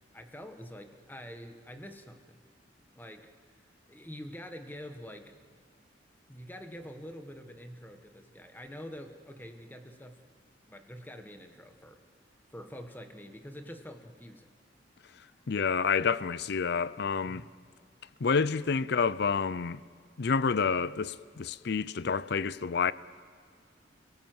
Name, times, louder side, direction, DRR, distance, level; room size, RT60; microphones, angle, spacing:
voice 1, 0.1-2.4 2.9-3.3 3.9-5.4 6.3-10.2 10.7-12.0 12.5-14.5 17.2-17.5, equal, 10° left, 1.3 m, -46 dB
voice 2, 15.5-17.4 18.2-19.8 20.2-22.9, left 5 dB, 60° left, 0.5 m, -28 dB
29.0 x 17.5 x 7.8 m
head